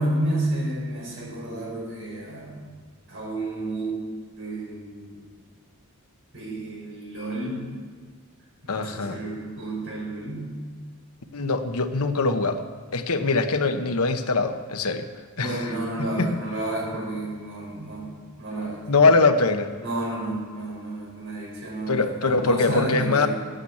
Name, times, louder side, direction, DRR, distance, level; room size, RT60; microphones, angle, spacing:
voice 1, 0.0-2.8 3.1-4.0 4.4-5.2 6.3-7.7 8.6-10.6 15.4-18.9 19.8-23.3, right 1 dB, 60° right, -3 dB, 5.5 m, -31 dB
voice 2, 8.7-9.2 11.3-15.1 15.4-15.6 16.2-16.3 18.9-19.7 21.9-23.3, left 3 dB, 80° left, 8 dB, 1.0 m, -22 dB
13.0 x 9.0 x 8.5 m, 1.6 s
head